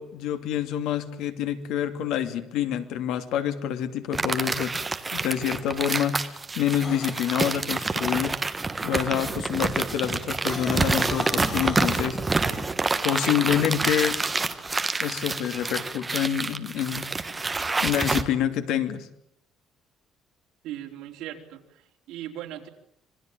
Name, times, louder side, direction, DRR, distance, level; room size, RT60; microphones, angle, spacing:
voice 1, 0.0-4.8 5.1-8.4 8.8-12.6 13.0-14.2 15.0-17.1 17.8-19.1, left 10 dB, 75° left, 9 dB, 2.6 m, -27 dB
sound 1, 4.1-18.2, right 3 dB, 15° right, 1.4 m, -27 dB
sound 2, 6.8-7.2 10.4-12.0, left 6 dB, 30° left, 1.0 m, -38 dB
voice 2, 20.6-22.7, right 12 dB, 80° right, 3 dB, 3.9 m, -38 dB
26.5 x 20.0 x 9.1 m, 0.72 s
cardioid pair, 175°, 0 cm